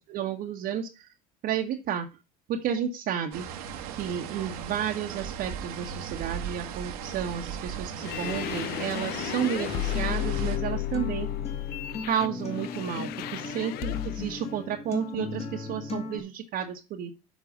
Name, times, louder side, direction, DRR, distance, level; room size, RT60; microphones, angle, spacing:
voice 1, 0.1-1.1 1.4-2.1 2.5-3.4 4.0-11.3 12.1-17.1, right 9 dB, 55° right, 0 dB, 1.3 m, -32 dB
sound 1, 3.3-10.6, right 8 dB, 75° right, 1.5 m, -37 dB
sound 2, 8.0-14.4, left 17 dB, 55° left, 0.5 m, -33 dB
Acoustic guitar, 8.2-16.2, left 2 dB, 35° left, 2.3 m, -38 dB
7.5 x 4.7 x 7.2 m, 0.28 s
hypercardioid pair, 80°, 19 cm